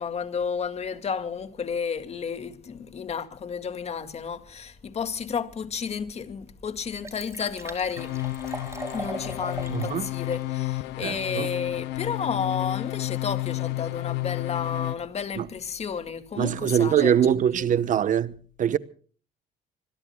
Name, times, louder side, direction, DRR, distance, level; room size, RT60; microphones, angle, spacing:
voice 1, 0.0-8.1 8.9-17.1, left 6 dB, 40° left, 2.1 m, -32 dB
Liquid, 5.9-6.0 6.4-6.5 6.7-10.0 10.3-10.4, right 2 dB, 15° right, 3.9 m, -38 dB
sound 1, 8.0-14.9, left 19 dB, 85° left, 0.7 m, -31 dB
voice 2, 9.7-10.1 11.0-11.5 15.4-15.5 16.4-18.8, right 9 dB, 50° right, 1.0 m, -23 dB
26.5 x 21.5 x 2.3 m
cardioid pair, 110°, 17 cm